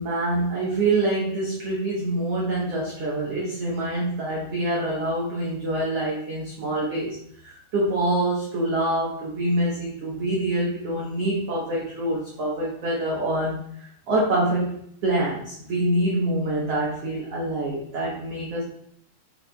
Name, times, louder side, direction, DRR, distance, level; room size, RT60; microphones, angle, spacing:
voice 1, 0.0-7.2 7.4-14.7 15.0-18.6, right 1 dB, 75° right, -5 dB, 1.4 m, -26 dB
6.6 x 6.3 x 2.3 m, 0.68 s
omnidirectional pair, 4.4 m